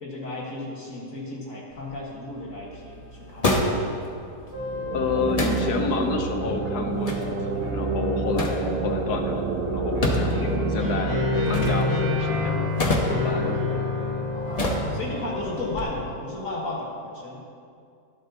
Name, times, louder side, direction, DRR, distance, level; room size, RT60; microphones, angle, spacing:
voice 1, 0.0-3.6 10.1-10.5 14.3-17.4, left 2 dB, 60° left, -3 dB, 2.0 m, -34 dB
sound 1, 1.7-15.8, left 1 dB, 25° left, 1.0 m, -31 dB
sound 2, 4.5-16.1, left 1 dB, 15° right, 2.0 m, -29 dB
sound 3, 4.7-12.3, right 4 dB, 85° right, 1.4 m, -30 dB
voice 2, 4.9-12.7 13.0-13.9, left 4 dB, 85° left, 4 dB, 1.4 m, -29 dB
19.5 x 7.6 x 2.9 m, 2.4 s
omnidirectional pair, 1.6 m